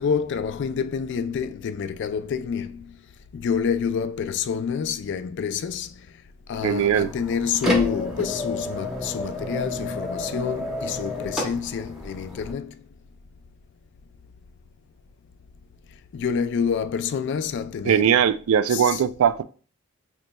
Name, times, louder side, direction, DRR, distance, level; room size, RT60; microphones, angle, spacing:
voice 1, 0.0-2.9 3.3-6.1 6.5-12.8 16.1-18.2 18.7-19.0, left 6 dB, 60° left, 0.3 m, -27 dB
sound 1, 6.5-12.5, left 1 dB, ahead, 0.8 m, -31 dB
voice 2, 6.6-7.1 17.9-19.4, right 8 dB, 80° right, 0.3 m, -20 dB
5.1 x 3.0 x 2.2 m
head